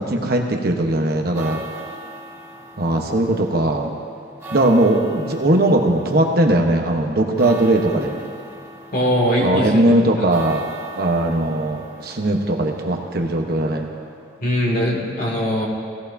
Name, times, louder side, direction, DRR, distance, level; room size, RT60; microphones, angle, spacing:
voice 1, 0.0-1.6 2.8-3.9 4.5-8.2 9.4-10.6 11.0-13.9, right 1 dB, 55° right, 2 dB, 1.0 m, -19 dB
sound 1, 1.1-14.7, right 1 dB, 15° right, 1.8 m, -40 dB
voice 2, 8.9-9.9 10.2-10.3 14.4-15.7, equal, 50° left, -1 dB, 2.0 m, -21 dB
17.0 x 14.5 x 2.7 m, 2.2 s
head